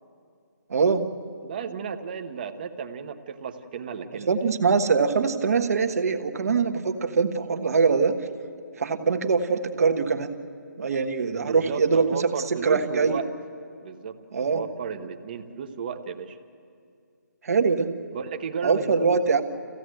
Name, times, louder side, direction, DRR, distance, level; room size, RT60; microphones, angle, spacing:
voice 1, 0.7-1.1 4.3-8.2 8.8-10.3 10.8-13.2 14.3-14.6 17.4-18.0 18.6-19.4, right 5 dB, 55° right, 7 dB, 1.4 m, -23 dB
voice 2, 1.4-4.3 11.4-13.3 13.8-16.4 18.1-19.1, right 6 dB, 30° right, 7 dB, 1.0 m, -34 dB
26.5 x 16.0 x 7.8 m, 2.4 s
hypercardioid pair, 170°, 10 cm